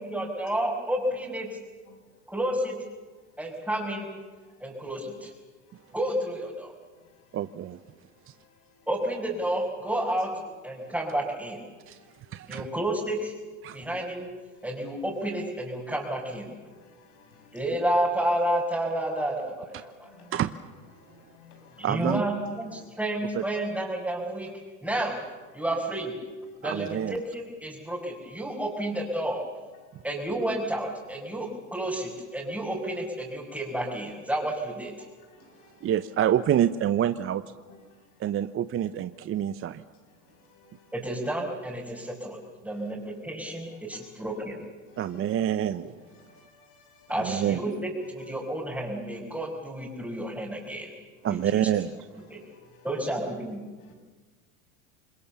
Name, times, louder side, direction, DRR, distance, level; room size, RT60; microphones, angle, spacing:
voice 1, 0.0-1.6 2.3-2.8 3.4-4.1 4.6-5.3 5.9-6.7 8.9-11.6 12.5-13.3 13.7-14.3 14.6-16.5 17.5-20.1 21.8-24.5 24.8-25.2 25.5-26.1 26.6-29.5 30.0-34.9 40.9-42.4 42.6-44.6 47.1-50.9 51.3-51.7 52.3-52.4 52.8-53.6, right 1 dB, 5° right, 5.1 m, -30 dB
voice 2, 7.3-7.8 11.9-12.0 12.3-12.7 13.6-13.8 20.3-20.5 21.8-22.2 23.3-23.4 26.6-27.2 35.8-37.4 38.2-39.8 45.0-45.9 47.2-47.6 51.2-51.9, right 10 dB, 30° right, 0.8 m, -27 dB
voice 3, 8.3-8.7 10.8-10.9 11.7-12.2 14.6-14.7 16.7-17.6 20.0-20.3 21.0-21.9 25.6-25.7 31.3-31.4 35.3-35.9 37.7-37.8 40.3-40.9 42.7-42.8 43.9-44.1 44.9-45.0 45.3-45.4 46.0-47.1 52.3-52.9 53.8-53.9, left 5 dB, 80° left, 7.1 m, -57 dB
27.5 x 21.0 x 7.1 m
hypercardioid pair, 105°, 43 cm